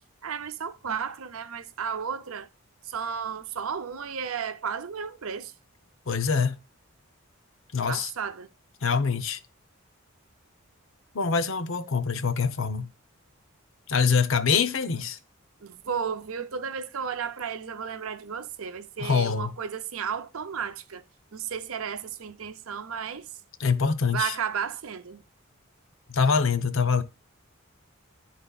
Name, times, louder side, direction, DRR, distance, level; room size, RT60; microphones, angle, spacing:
voice 1, 0.2-2.5 2.8-5.5 7.9-8.5 14.7-14.8 15.6-21.0 21.3-23.4 24.1-25.2, right 7 dB, 75° right, 0.6 m, -33 dB
voice 2, 6.1-6.6 7.7-8.1 8.8-9.4 11.1-12.9 13.9-15.2 19.0-19.5 23.6-24.3 26.1-27.0, left 5 dB, 65° left, 0.7 m, -24 dB
11.0 x 4.1 x 2.3 m
head